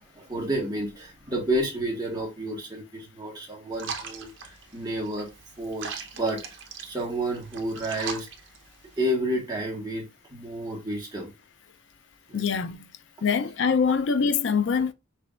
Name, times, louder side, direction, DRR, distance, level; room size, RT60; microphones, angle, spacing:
voice 1, 0.1-5.3 5.6-8.3 9.0-10.0 10.3-11.3 12.3-12.4, right 1 dB, 20° right, 1.5 m, -30 dB
sound 1, 3.7-9.1, right 5 dB, 60° right, 0.8 m, -40 dB
voice 2, 12.3-12.9 13.2-14.9, left 6 dB, 55° left, 0.4 m, -24 dB
5.7 x 3.3 x 2.4 m
head